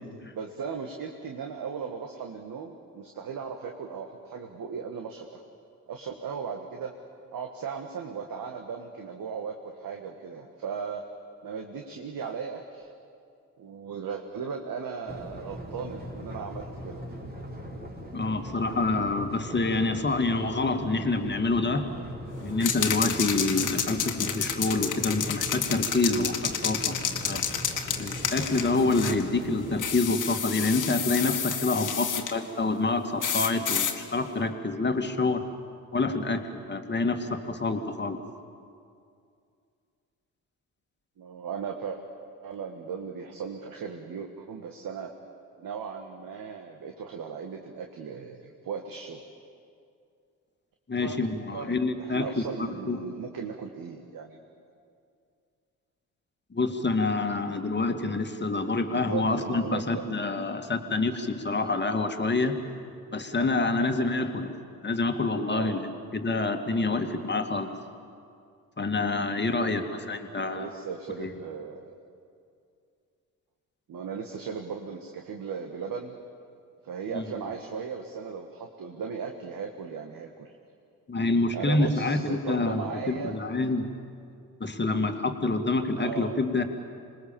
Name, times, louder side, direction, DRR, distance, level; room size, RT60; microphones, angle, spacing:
voice 1, 0.3-5.4 5.9-6.9 7.3-11.0 11.4-12.9 13.6-17.0 41.2-42.0 42.4-45.1 45.6-49.2 51.0-51.2 51.5-54.4 58.9-60.1 63.6-63.9 64.2-64.3 65.5-65.8 70.4-71.9 73.9-76.2 76.8-80.5 81.5-83.4 86.0-86.4, right 6 dB, 50° right, 3 dB, 1.9 m, -37 dB
sound 1, 15.1-29.8, equal, 20° right, 4.1 m, -40 dB
voice 2, 18.1-21.9 22.4-27.4 28.0-35.4 35.9-38.2 50.9-52.3 52.6-53.0 56.5-62.6 63.1-64.5 64.8-67.7 68.8-70.7 71.2-71.3 77.1-77.2 81.1-83.9 84.6-86.6, left 3 dB, 25° left, 6 dB, 2.3 m, -27 dB
sound 2, 22.6-29.2 29.8-32.3 33.2-34.0, left 7 dB, 45° left, 2.0 m, -30 dB
26.5 x 20.0 x 7.2 m, 2.4 s
hypercardioid pair, 50°, 44 cm